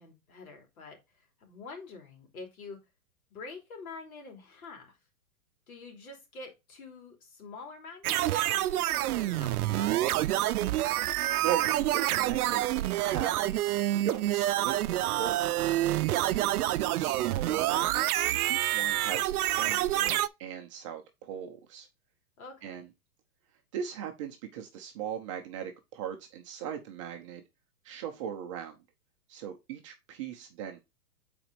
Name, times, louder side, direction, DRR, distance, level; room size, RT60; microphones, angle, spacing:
voice 1, 0.0-2.8 3.3-5.0 5.7-10.1 22.4-22.8, left 4 dB, 70° left, 3 dB, 3.0 m, -47 dB
sound 1, 8.0-20.3, right 14 dB, 80° right, 0.5 m, -28 dB
voice 2, 11.4-13.3 13.9-15.7 16.0-21.9 22.6-22.9 23.7-27.4 27.8-28.8 29.3-30.8, right 9 dB, 20° right, 4 dB, 0.5 m, -39 dB
5.7 x 4.3 x 5.0 m, 0.23 s
hypercardioid pair, 150°, 44 cm